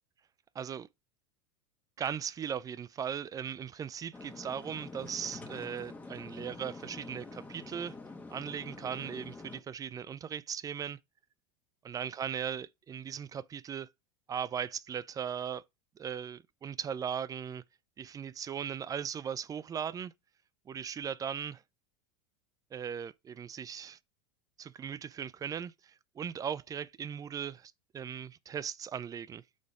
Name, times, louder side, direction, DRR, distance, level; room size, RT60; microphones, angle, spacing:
voice 1, 0.5-0.9 2.0-7.9 8.3-11.0 11.8-13.9 14.3-15.6 16.0-17.6 18.0-20.1 20.7-21.6 22.7-24.0 24.6-29.4, right 8 dB, 25° right, 0.5 m, -38 dB
sound 1, 4.1-9.6, left 3 dB, 10° left, 1.5 m, -46 dB
8.4 x 4.1 x 4.9 m
hypercardioid pair, 85°, 15 cm